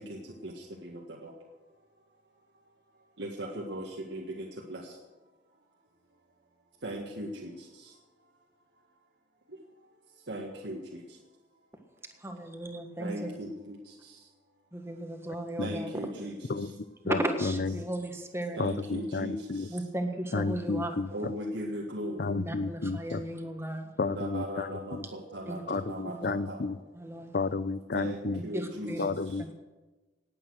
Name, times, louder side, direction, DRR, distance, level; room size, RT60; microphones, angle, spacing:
voice 1, 3.2-3.8 4.1-4.8 6.8-7.5 10.3-10.8 13.0-13.5 15.6-16.4 18.6-19.3 21.1-22.2 24.0-26.6 27.9-28.9, right 1 dB, 70° right, -2 dB, 1.8 m, -37 dB
voice 2, 12.2-13.3 14.7-15.9 17.0-18.6 19.7-21.0 22.3-23.9 25.5-25.6 26.1-26.2 26.9-27.3 28.5-29.1 29.4-29.5, right 1 dB, 15° right, 5 dB, 1.5 m, -35 dB
voice 3, 17.1-17.9 18.6-19.7 20.3-21.1 22.2-23.2 24.0-25.0 25.7-26.7 27.3-28.4 29.0-29.5, left 3 dB, 55° left, 16 dB, 0.6 m, -32 dB
18.5 x 8.8 x 6.4 m, 1.2 s
head